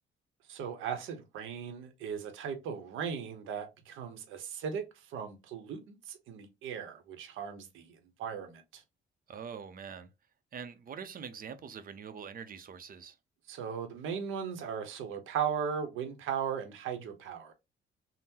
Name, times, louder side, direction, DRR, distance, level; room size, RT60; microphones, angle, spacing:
voice 1, 0.5-8.8 13.5-17.5, right 7 dB, 85° right, 0.8 m, -37 dB
voice 2, 9.3-10.1 10.5-13.2, right 6 dB, 45° right, 0.5 m, -44 dB
3.6 x 2.0 x 2.8 m
cardioid pair, 90°, 20 cm